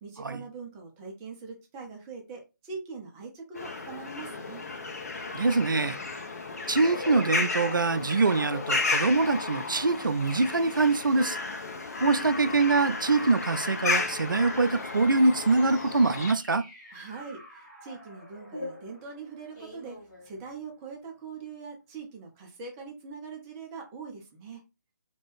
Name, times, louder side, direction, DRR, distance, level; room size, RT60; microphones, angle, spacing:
voice 1, 0.0-4.7 16.9-24.6, right 4 dB, 15° right, 0.4 m, -42 dB
sound 1, 3.6-16.3, left 3 dB, 50° left, 0.6 m, -33 dB
voice 2, 5.3-6.0 6.7-11.4 12.0-16.6, right 3 dB, 90° right, 0.4 m, -24 dB
sound 2, 15.1-20.8, left 1 dB, 10° left, 0.9 m, -46 dB
2.6 x 2.2 x 3.1 m
figure-of-eight pair, 150°, 10 cm